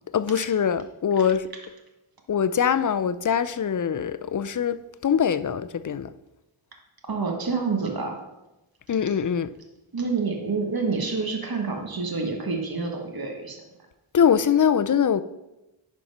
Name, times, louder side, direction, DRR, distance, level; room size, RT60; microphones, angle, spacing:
voice 1, 0.1-1.5 2.3-4.8 5.0-6.1 8.9-9.5 14.1-15.2, left 7 dB, 40° left, 0.5 m, -23 dB
voice 2, 7.1-8.2 9.9-13.6, right 4 dB, 50° right, 1.4 m, -28 dB
10.5 x 4.3 x 5.5 m
wide cardioid pair, 60°, 47 cm